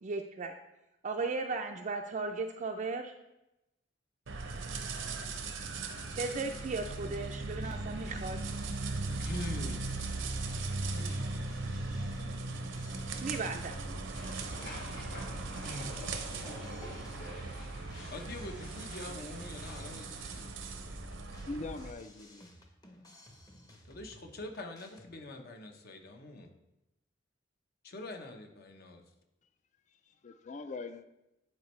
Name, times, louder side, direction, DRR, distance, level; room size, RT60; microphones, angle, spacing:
voice 1, 0.0-0.5 1.0-3.1 6.2-8.4 13.2-13.8, right 3 dB, 40° right, 0.4 m, -36 dB
sound 1, 4.3-21.9, right 3 dB, 80° right, 0.7 m, -38 dB
sound 2, 6.1-25.1, left 1 dB, 20° left, 0.8 m, -57 dB
voice 2, 9.2-10.3 10.9-12.1 14.5-15.0 15.6-16.1 18.1-20.7 23.8-26.5 27.8-29.0, left 2 dB, 55° left, 0.8 m, -45 dB
sound 3, 14.1-20.0, left 1 dB, 80° left, 2.4 m, -49 dB
voice 3, 21.5-22.5 30.2-31.1, left 3 dB, 40° left, 0.4 m, -41 dB
9.6 x 4.3 x 3.1 m
head